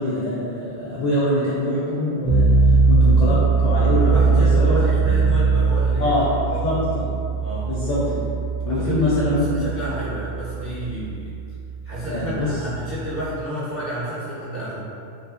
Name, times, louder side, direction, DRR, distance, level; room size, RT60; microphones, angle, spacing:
voice 1, 0.0-2.5 2.9-4.8 6.0-6.3 6.6-7.1 7.7-8.3 8.6-9.6 12.1-12.6, left 1 dB, 65° left, -9 dB, 0.4 m, -24 dB
sound 1, 2.2-13.4, right 4 dB, 75° right, 0.8 m, -20 dB
voice 2, 3.9-6.6 7.3-7.7 8.7-11.4 11.8-14.9, equal, 20° right, -10 dB, 0.3 m, -30 dB
2.7 x 2.3 x 2.4 m, 2.5 s
omnidirectional pair, 1.2 m